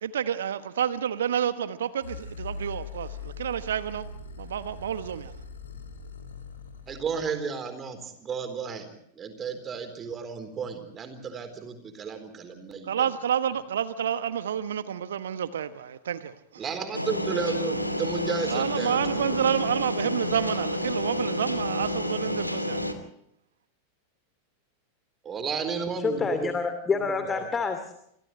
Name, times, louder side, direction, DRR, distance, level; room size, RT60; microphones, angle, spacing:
voice 1, 0.0-4.1 4.4-5.4 12.8-16.6 18.5-22.9, right 9 dB, 65° right, 1.3 m, -29 dB
sound 1, 2.0-7.2, left 3 dB, 70° left, 3.5 m, -41 dB
voice 2, 6.9-8.9 9.2-13.1 16.6-19.3 25.2-26.5 27.1-27.5, right 6 dB, 25° right, 4.0 m, -33 dB
sound 2, 16.9-22.9, left 1 dB, 90° left, 2.7 m, -30 dB
voice 3, 26.0-27.9, left 5 dB, 15° left, 2.6 m, -28 dB
29.0 x 27.0 x 3.3 m
figure-of-eight pair, 90°, 0 cm